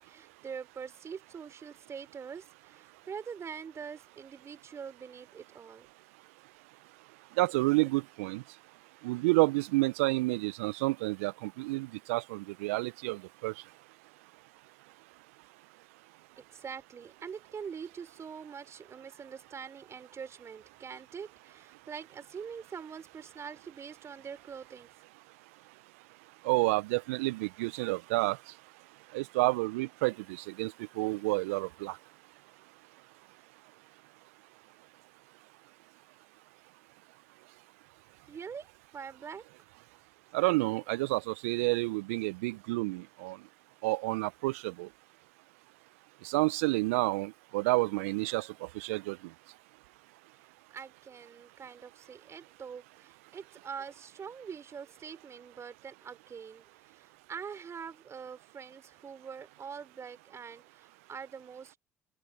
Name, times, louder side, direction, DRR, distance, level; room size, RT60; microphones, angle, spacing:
voice 1, 0.0-5.9 16.4-24.9 38.3-38.7 38.9-39.4 50.7-61.8, right 6 dB, 40° right, 4.7 m, -44 dB
voice 2, 7.4-8.4 9.0-13.5 26.4-28.4 29.1-32.0 40.3-43.4 43.8-44.9 46.2-49.3, right 23 dB, 75° right, 0.6 m, -30 dB
hypercardioid pair, 60°, 8 cm